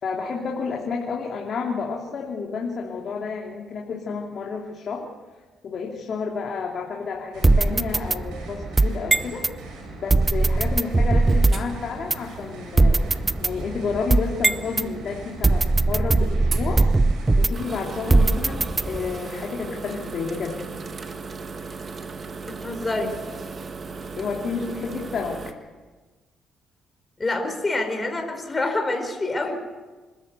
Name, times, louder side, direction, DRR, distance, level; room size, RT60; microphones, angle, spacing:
voice 1, 0.0-5.1 5.6-9.4 10.0-13.0 13.4-16.8 17.4-20.6 24.2-25.5, left 5 dB, 55° left, -1 dB, 3.0 m, -30 dB
sound 1, 7.3-17.5, right 3 dB, 85° right, 6.5 m, -42 dB
sound 2, 7.4-9.5 10.1-11.7 12.1-12.2 12.8-14.9 15.4-17.7 18.1-19.2, right 2 dB, 20° right, 0.6 m, -20 dB
sound 3, 11.1-25.5, right 4 dB, 40° right, 1.9 m, -38 dB
voice 2, 22.6-23.2 27.2-29.6, left 2 dB, 25° left, 5 dB, 4.6 m, -26 dB
26.0 x 13.5 x 8.2 m, 1.3 s
cardioid pair, 90°, 0 cm